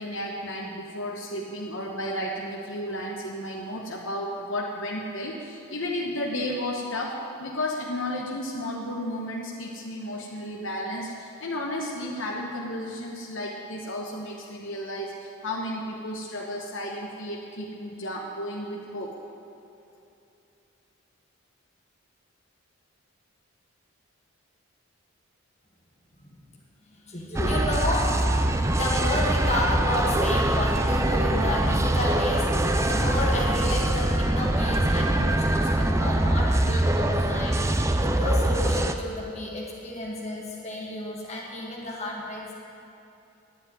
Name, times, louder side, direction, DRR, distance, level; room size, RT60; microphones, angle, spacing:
voice 1, 0.0-19.1, left 1 dB, 65° left, -2 dB, 1.1 m, -33 dB
voice 2, 26.9-28.1 28.7-42.4, left 1 dB, 30° left, -2 dB, 2.0 m, -31 dB
sound 1, 27.3-38.9, right 1 dB, 15° right, 0.4 m, -23 dB
10.5 x 7.8 x 9.4 m, 2.8 s
head